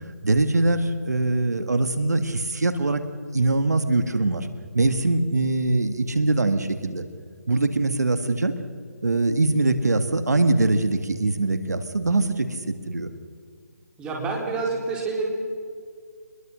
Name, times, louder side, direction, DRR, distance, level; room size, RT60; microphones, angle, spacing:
voice 1, 0.2-3.0 3.3-4.5 4.7-7.0 7.5-8.6 9.0-12.6 12.9-13.1, right 2 dB, 80° right, 10 dB, 1.9 m, -22 dB
voice 2, 14.0-15.2, right 3 dB, 10° right, -2 dB, 4.4 m, -27 dB
23.5 x 22.0 x 6.3 m, 2.1 s
figure-of-eight pair, 155°, 9 cm